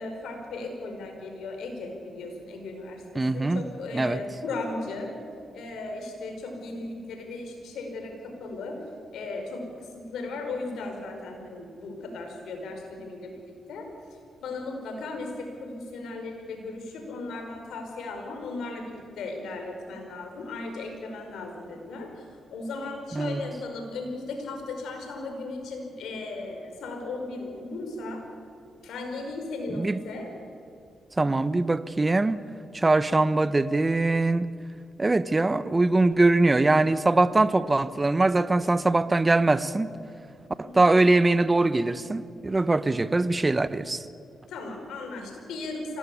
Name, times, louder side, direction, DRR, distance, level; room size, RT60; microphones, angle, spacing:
voice 1, 0.0-5.1 5.5-8.8 9.1-13.9 14.4-22.2 22.5-28.2 28.8-30.3 40.6-40.8 44.5-46.0, left 3 dB, 85° left, 5.0 m, -36 dB
voice 2, 3.1-3.6 3.9-4.2 23.1-23.4 29.7-30.0 31.2-32.4 32.7-34.5 35.0-39.9 40.6-44.0, right 2 dB, 25° right, 1.0 m, -22 dB
25.0 x 18.5 x 8.5 m
cardioid pair, 60°, 0 cm